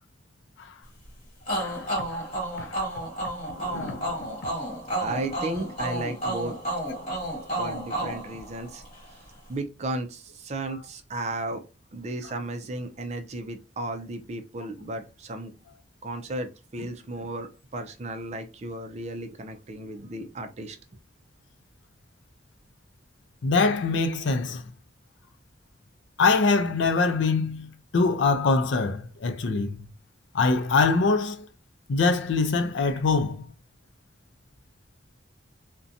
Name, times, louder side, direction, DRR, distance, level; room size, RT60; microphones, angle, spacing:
sound 1, 1.5-9.0, right 1 dB, 35° left, 1.4 m, -31 dB
voice 1, 3.6-4.2 23.4-24.6 26.2-29.8 30.3-31.5 31.9-33.4, left 4 dB, 80° left, 0.4 m, -24 dB
voice 2, 5.0-6.6 7.6-8.9 9.5-11.6 11.9-15.5 16.0-20.8, right 2 dB, 35° right, 0.4 m, -34 dB
2.5 x 2.1 x 2.6 m
head